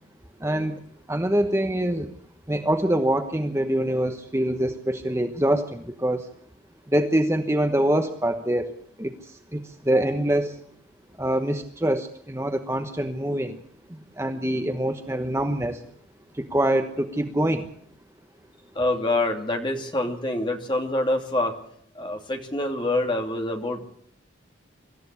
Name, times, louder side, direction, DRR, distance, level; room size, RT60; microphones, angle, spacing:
voice 1, 0.4-0.8 1.1-2.1 2.5-6.3 6.9-8.7 9.0-10.6 11.2-13.6 13.9-15.8 16.3-17.7, right 1 dB, 15° right, 6 dB, 1.1 m, -25 dB
voice 2, 18.7-21.5 21.9-23.9, left 2 dB, 25° left, 3 dB, 2.8 m, -26 dB
24.5 x 13.5 x 8.3 m, 0.66 s
head